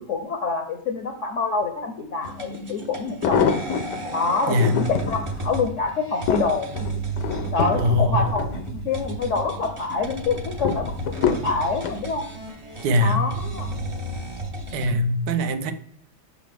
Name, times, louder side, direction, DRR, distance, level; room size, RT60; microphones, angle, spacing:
voice 1, 0.0-3.4 4.1-6.9 7.5-10.9 11.2-12.3 13.0-13.8, left 4 dB, 60° left, 5 dB, 0.8 m, -26 dB
sound 1, 2.2-2.3 3.0-4.0 4.5-5.2 5.7-9.1 9.5-10.0 10.6-12.0 12.8-13.1 13.4-13.5, left 7 dB, 80° left, 1.3 m, -26 dB
sound 2, 2.2-14.9, right 2 dB, 40° right, 0.4 m, -33 dB
voice 2, 7.8-8.3 12.8-13.3 14.7-15.7, left 1 dB, 80° right, 9 dB, 1.2 m, -21 dB
6.0 x 5.0 x 3.4 m, 0.66 s
omnidirectional pair, 1.8 m